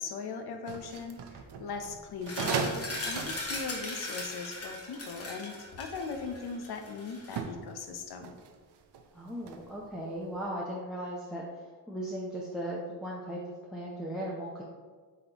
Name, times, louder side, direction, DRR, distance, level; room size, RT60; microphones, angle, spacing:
voice 1, 0.0-8.4, left 4 dB, 60° left, 5 dB, 0.8 m, -39 dB
sound 1, 0.7-5.6 6.2-6.7 7.2-9.9 10.2-10.4, right 5 dB, 65° right, 0.7 m, -38 dB
sound 2, 2.2-7.4, left 2 dB, 35° left, 1.3 m, -39 dB
voice 2, 9.1-11.4 11.9-13.4 13.7-14.6, equal, ahead, -4 dB, 0.7 m, -37 dB
8.4 x 4.2 x 3.0 m, 1.5 s
cardioid pair, 135°, 42 cm